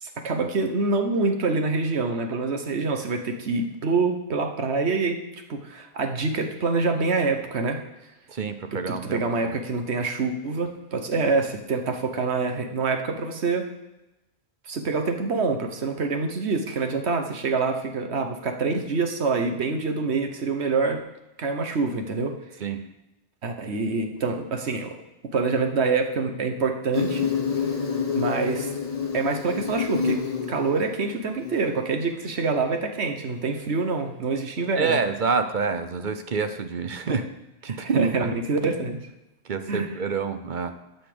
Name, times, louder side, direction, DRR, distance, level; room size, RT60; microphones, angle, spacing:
voice 1, 0.0-5.2 5.5-7.8 8.7-13.7 14.7-21.0 21.4-22.4 23.4-25.0 25.3-27.3 28.1-28.7 29.1-30.2 30.5-35.0 37.1-37.2 37.7-39.0 39.7-40.0, right 4 dB, 85° right, 6 dB, 1.5 m, -26 dB
voice 2, 8.4-9.6 22.6-22.8 34.8-37.2 37.6-38.4 39.5-40.7, right 5 dB, 50° right, 9 dB, 0.9 m, -27 dB
Insect, 26.9-31.9, left 6 dB, 35° left, 1.3 m, -28 dB
12.0 x 5.7 x 6.9 m, 0.95 s
omnidirectional pair, 1.1 m